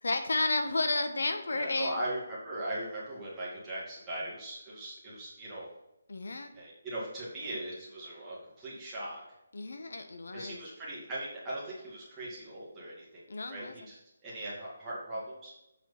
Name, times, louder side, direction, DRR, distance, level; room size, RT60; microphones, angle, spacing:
voice 1, 0.0-2.0 6.1-6.5 9.5-10.6 13.3-13.8, left 2 dB, 85° left, 7 dB, 1.0 m, -32 dB
voice 2, 1.5-5.7 6.5-9.2 10.3-13.2 13.5-14.0 14.2-15.5, right 1 dB, 10° right, -9 dB, 2.1 m, -39 dB
7.8 x 4.5 x 5.4 m, 0.93 s
hypercardioid pair, 175°, 0 cm